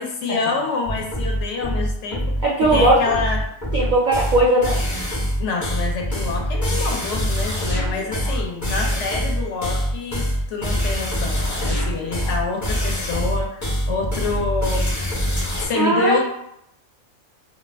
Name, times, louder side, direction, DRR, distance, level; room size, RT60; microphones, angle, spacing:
voice 1, 0.0-3.4 5.4-14.9 15.6-16.2, left 4 dB, 70° left, 0 dB, 0.9 m, -27 dB
sound 1, 0.9-15.7, equal, 25° left, 0.3 m, -24 dB
voice 2, 2.4-3.0 3.7-4.8 15.7-16.2, right 2 dB, 65° right, -4 dB, 0.4 m, -18 dB
2.4 x 2.3 x 3.3 m, 0.75 s
omnidirectional pair, 1.3 m